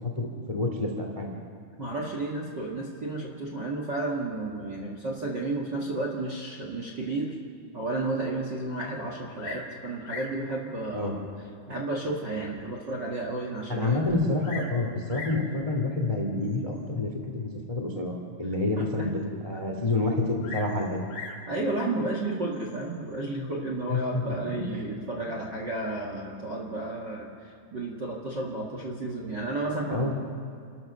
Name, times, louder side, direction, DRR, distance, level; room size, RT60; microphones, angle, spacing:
voice 1, 0.2-1.3 10.9-11.1 13.7-18.1 18.4-21.0 23.9-24.2 24.7-24.8 29.9-30.1, left 2 dB, 30° left, 2 dB, 0.6 m, -28 dB
voice 2, 1.8-7.4 7.7-11.2 11.7-14.0 18.8-19.1 21.5-30.2, right 2 dB, 45° right, -1 dB, 1.4 m, -32 dB
Bird vocalization bird call bird song, 9.4-9.7 10.0-10.4 11.3-11.4 12.0-12.1 12.6-12.7 12.9-13.0 14.1-14.8 15.1-15.5 16.4-16.8 20.4-21.5 22.5-23.0, left 4 dB, 60° left, 3.7 m, -40 dB
30.0 x 13.0 x 6.8 m, 2.2 s
omnidirectional pair, 5.0 m